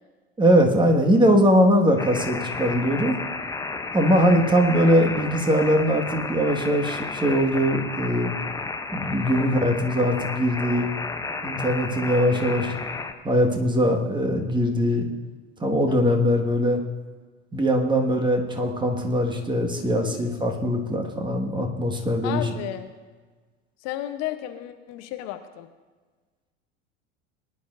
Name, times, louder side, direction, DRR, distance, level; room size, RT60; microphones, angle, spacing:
voice 1, 0.4-3.1 3.9-8.3 8.9-10.9 11.4-12.7 13.2-15.1 15.6-16.8 17.5-22.4, equal, 15° right, 2 dB, 1.8 m, -21 dB
sound 1, 2.0-13.1, left 3 dB, 10° left, 0.8 m, -32 dB
voice 2, 9.2-9.9 12.3-12.7 15.9-16.2 20.0-20.2 22.2-23.0 23.8-25.7, left 13 dB, 45° left, 9 dB, 1.0 m, -35 dB
20.0 x 10.5 x 2.7 m, 1.4 s
figure-of-eight pair, 80°, 36 cm